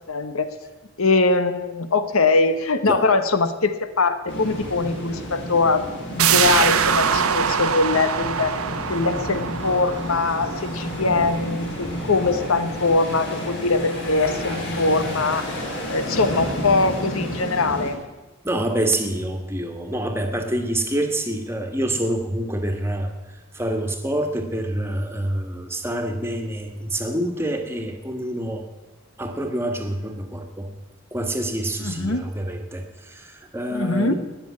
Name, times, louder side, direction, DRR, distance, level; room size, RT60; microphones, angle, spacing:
voice 1, 0.1-0.5 1.0-5.9 6.1-8.5 8.9-18.0 31.8-32.2 33.7-34.1, left 3 dB, 80° left, 10 dB, 1.1 m, -22 dB
sound 1, 4.3-17.9, equal, 55° left, 5.1 m, -31 dB
sound 2, 6.2-11.7 12.0-12.1, right 7 dB, 85° right, 1.0 m, -23 dB
voice 2, 18.4-28.6 29.2-30.7 31.1-34.1, right 1 dB, 10° right, 4 dB, 1.5 m, -27 dB
19.0 x 7.0 x 9.6 m, 1.1 s
head